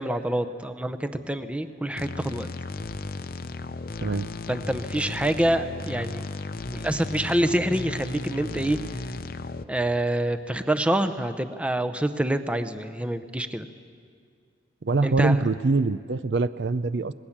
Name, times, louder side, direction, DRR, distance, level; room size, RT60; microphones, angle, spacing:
voice 1, 0.0-2.5 4.5-6.2 6.7-8.8 9.7-13.7 15.0-15.5, right 1 dB, 5° right, 9 dB, 0.7 m, -26 dB
sound 1, 2.0-9.6, left 3 dB, 50° left, 0.7 m, -35 dB
voice 2, 14.8-17.1, right 3 dB, 65° right, 14 dB, 0.5 m, -24 dB
26.5 x 20.0 x 7.3 m, 2.2 s
head